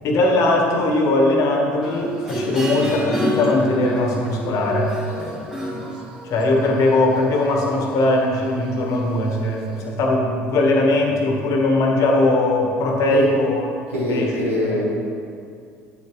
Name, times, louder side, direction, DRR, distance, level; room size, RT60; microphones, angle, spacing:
voice 1, 0.0-5.0 6.2-13.7 14.1-14.8, left 2 dB, 55° left, 1 dB, 1.4 m, -20 dB
sound 1, 1.8-9.3 9.8-9.9, equal, 10° right, 1.9 m, -30 dB
voice 2, 13.9-14.8, left 1 dB, 85° right, -5 dB, 1.7 m, -23 dB
8.5 x 7.7 x 3.2 m, 2.3 s
figure-of-eight pair, 65°, 7 cm